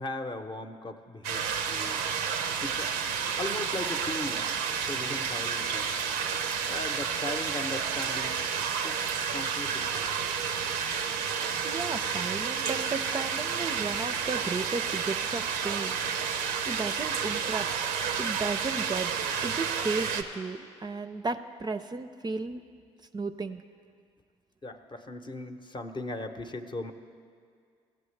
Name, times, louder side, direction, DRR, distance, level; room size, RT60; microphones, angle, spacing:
voice 1, 0.0-2.1 2.6-2.9 3.4-4.5 4.9-5.9 6.7-8.4 8.8-9.0 9.3-10.0 24.6-26.9, left 2 dB, 35° left, 6 dB, 0.7 m, -38 dB
sound 1, 1.2-20.2, right 7 dB, 90° right, 0.5 m, -30 dB
voice 2, 11.6-16.0 16.7-17.7 18.2-19.1 19.4-22.6 23.1-23.6, right 4 dB, 30° right, 8 dB, 0.4 m, -34 dB
15.5 x 7.7 x 3.2 m, 2.2 s
hypercardioid pair, 45°, 15 cm